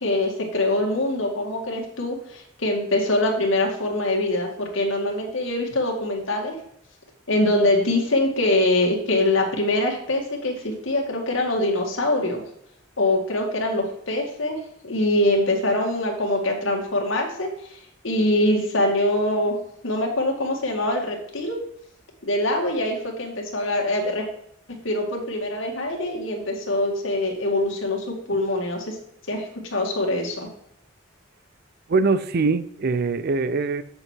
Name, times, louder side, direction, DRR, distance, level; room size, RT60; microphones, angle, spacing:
voice 1, 0.0-6.6 7.3-12.4 13.0-19.6 19.8-21.6 22.2-24.3 24.8-29.0 29.3-30.5, left 1 dB, 85° left, 0 dB, 2.1 m, -24 dB
voice 2, 31.9-33.8, right 4 dB, 55° right, 14 dB, 0.5 m, -22 dB
7.9 x 6.7 x 4.5 m, 0.72 s
head